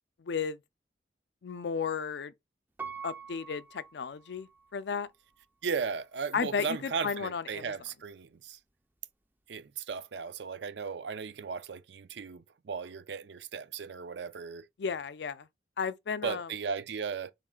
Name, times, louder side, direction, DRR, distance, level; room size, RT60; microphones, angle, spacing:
voice 1, 0.2-0.6 1.4-2.3 3.0-5.1 6.3-7.7 14.8-15.5 15.8-16.5, left 6 dB, 65° left, 0.4 m, -34 dB
Piano, 2.8-4.8 5.3-5.4, right 6 dB, 10° right, 0.4 m, -44 dB
voice 2, 5.6-8.6 9.5-14.6 16.2-17.3, right 5 dB, 75° right, 0.5 m, -36 dB
3.6 x 3.1 x 3.7 m
head